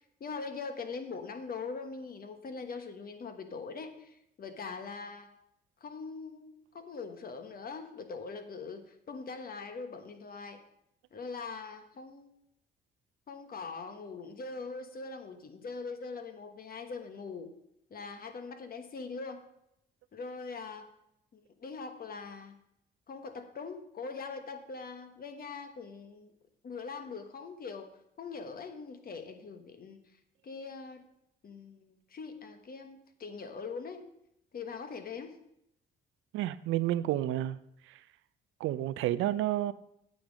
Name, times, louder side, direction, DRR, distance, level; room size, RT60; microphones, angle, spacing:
voice 1, 0.0-5.3 5.8-10.6 11.1-12.3 13.3-17.5 17.9-19.4 20.1-20.9 21.3-22.6 23.1-26.3 26.6-30.0 30.4-31.0 31.4-34.1 34.5-35.4, left 4 dB, 50° left, 1.2 m, -42 dB
voice 2, 36.3-37.6 38.6-39.7, right 14 dB, 85° right, 0.5 m, -30 dB
9.0 x 7.3 x 5.1 m
cardioid pair, 90°, 20 cm